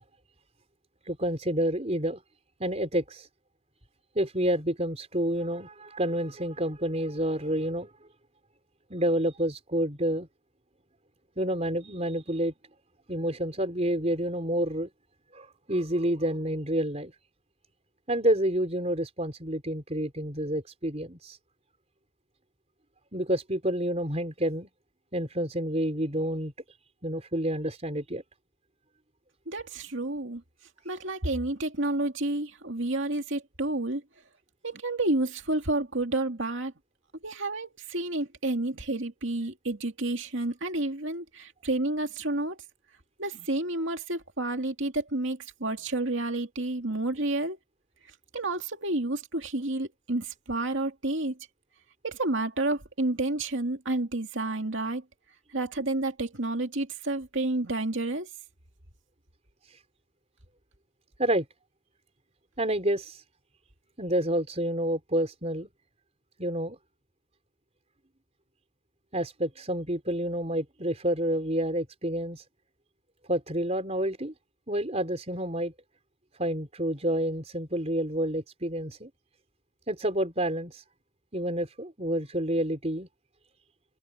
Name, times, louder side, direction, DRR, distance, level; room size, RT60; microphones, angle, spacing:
voice 1, 1.0-2.2 2.6-3.3 4.1-7.9 8.9-10.3 11.4-12.5 13.1-14.9 15.3-17.1 18.1-21.4 23.1-24.7 25.1-26.5 27.0-28.2 59.7-59.8 61.2-61.4 62.6-63.2 64.0-65.7 66.4-66.8 69.1-72.4 73.3-74.3 74.7-75.7 76.4-79.1 79.9-80.8 81.3-83.1, right 1 dB, 30° right, 4.8 m, -29 dB
voice 2, 29.5-30.4 30.8-34.0 34.6-36.7 37.2-42.6 43.2-47.6 48.3-51.4 52.0-55.0 55.5-58.3, right 2 dB, 60° right, 2.6 m, -30 dB
head